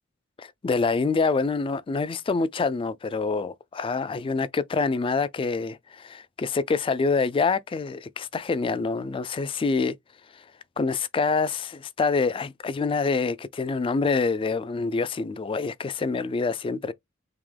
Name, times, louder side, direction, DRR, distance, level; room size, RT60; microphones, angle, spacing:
voice 1, 0.4-9.9 10.8-16.9, left 4 dB, 25° left, 0.3 m, -26 dB
3.7 x 2.8 x 3.2 m
head